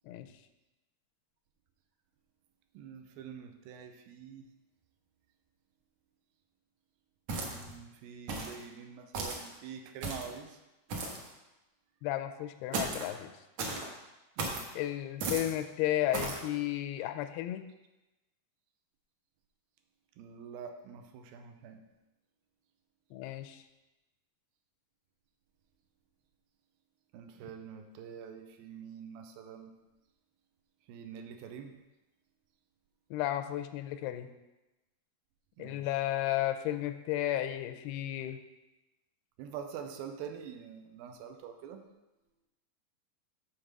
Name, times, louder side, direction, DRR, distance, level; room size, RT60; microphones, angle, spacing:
voice 1, 2.7-4.4 7.3-10.6 14.4-14.7 20.2-21.8 27.1-29.7 30.9-31.7 35.6-35.9 39.4-41.8, right 7 dB, 80° right, 6 dB, 2.3 m, -46 dB
sound 1, 7.3-7.8 8.3-8.6 9.1-9.5 10.0-10.4 10.9-11.3 12.7-13.1 13.6-13.9 14.4-14.7 15.2-15.5 16.1-16.4, right 3 dB, 60° right, 2.0 m, -35 dB
voice 2, 12.0-13.3 14.7-17.7 23.1-23.6 33.1-34.3 35.6-38.4, left 13 dB, 90° left, 9 dB, 2.6 m, -33 dB
7.4 x 4.7 x 6.6 m, 1.0 s
omnidirectional pair, 4.5 m